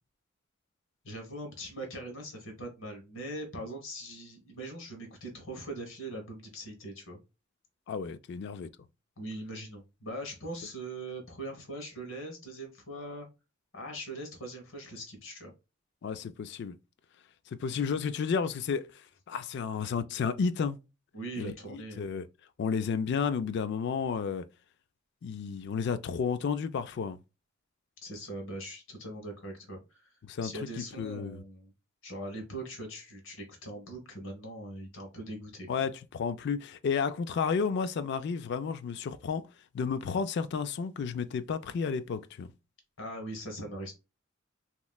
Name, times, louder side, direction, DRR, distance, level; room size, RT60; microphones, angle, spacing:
voice 1, 1.0-7.2 9.2-13.3 13.7-15.5 21.1-22.0 28.0-30.1 30.4-31.7 32.0-35.7 43.0-43.9, right 1 dB, 85° left, 1.4 m, -41 dB
voice 2, 7.9-8.7 16.0-16.8 17.5-19.0 19.3-20.8 21.4-22.3 22.6-24.5 25.2-27.2 30.2-30.5 30.8-31.4 35.7-39.5 39.7-42.5, left 6 dB, 60° left, 0.3 m, -32 dB
3.2 x 3.0 x 2.2 m
head